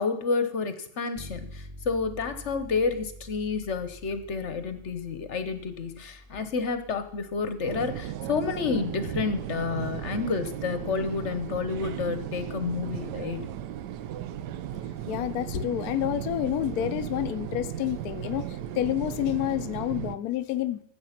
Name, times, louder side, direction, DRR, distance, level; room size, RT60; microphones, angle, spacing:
voice 1, 0.0-13.5, left 5 dB, 50° left, 10 dB, 1.1 m, -30 dB
Bass guitar, 1.1-10.9, equal, 20° right, 1.3 m, -48 dB
sound 1, 7.7-20.2, right 10 dB, 85° right, 1.2 m, -36 dB
voice 2, 15.1-20.8, left 13 dB, 70° left, 10 dB, 1.1 m, -29 dB
14.5 x 7.8 x 5.8 m, 0.70 s
omnidirectional pair, 1.8 m